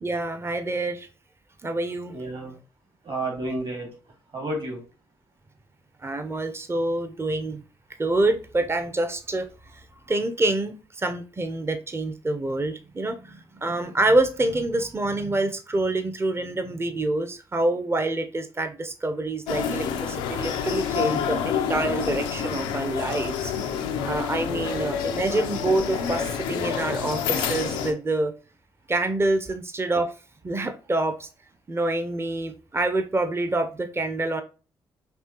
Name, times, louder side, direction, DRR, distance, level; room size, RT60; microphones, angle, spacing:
voice 1, 0.0-1.1 1.6-2.1 6.0-7.6 8.0-9.8 10.1-23.5 24.0-28.3 28.9-30.1 30.4-31.3 31.7-34.4, right 2 dB, 25° right, 8 dB, 0.7 m, -26 dB
voice 2, 2.1-2.6 3.0-3.9 4.3-4.8 24.5-24.8, right 2 dB, 50° right, 3 dB, 2.1 m, -31 dB
sound 1, 19.5-27.9, left 7 dB, 90° left, 0.5 m, -28 dB
5.4 x 2.9 x 2.9 m, 0.34 s
hypercardioid pair, 50°, 11 cm